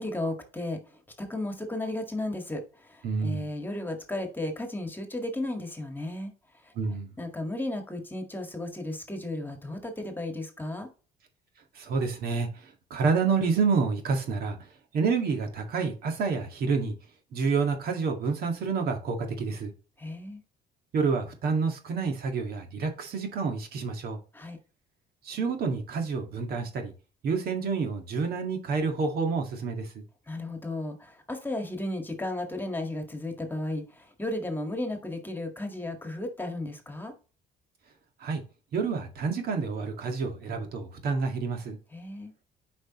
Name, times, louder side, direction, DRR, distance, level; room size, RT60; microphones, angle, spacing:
voice 1, 0.0-6.3 6.6-6.7 7.2-10.9 20.0-20.4 24.3-24.6 30.3-37.1 41.9-42.3, left 1 dB, 10° left, 1.7 m, -34 dB
voice 2, 3.0-3.5 6.8-7.1 11.8-14.7 14.9-16.9 17.3-19.7 20.9-24.2 25.2-26.9 27.2-30.0 38.2-38.4 38.7-41.8, right 5 dB, 65° right, 1.9 m, -28 dB
8.0 x 5.2 x 3.0 m
cardioid pair, 110°, 17 cm